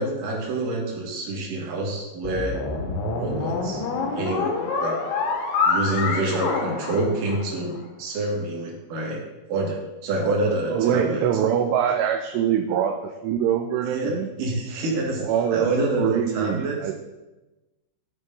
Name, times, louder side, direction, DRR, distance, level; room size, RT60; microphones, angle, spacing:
voice 1, 0.0-2.6 3.1-3.8 4.1-5.0 5.6-9.2 9.5-11.2 13.8-15.2 15.5-16.8, right 2 dB, 55° right, -2 dB, 2.8 m, -27 dB
sound 1, 2.2-7.7, left 4 dB, 85° left, 3.6 m, -26 dB
voice 2, 10.7-14.3 15.2-15.7 15.9-16.9, right 9 dB, 80° right, 3 dB, 2.5 m, -24 dB
14.5 x 5.2 x 3.8 m, 1.1 s
omnidirectional pair, 5.3 m